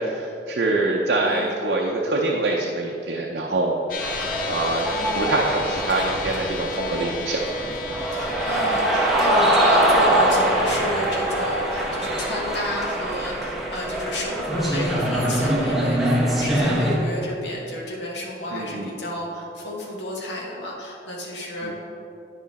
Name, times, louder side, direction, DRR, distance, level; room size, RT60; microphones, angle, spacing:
voice 1, 0.0-3.7 4.5-7.5 16.6-16.9 18.5-18.9 21.6-21.7, right 2 dB, 60° right, -1 dB, 0.6 m, -25 dB
voice 2, 1.2-1.6 4.9-5.4 8.1-21.7, left 1 dB, 75° left, -3 dB, 1.3 m, -32 dB
sound 1, 3.9-16.4, left 1 dB, 50° left, 0.7 m, -35 dB
sound 2, 4.0-16.9, right 1 dB, ahead, 1.1 m, -23 dB
9.8 x 5.0 x 4.1 m, 2.8 s
head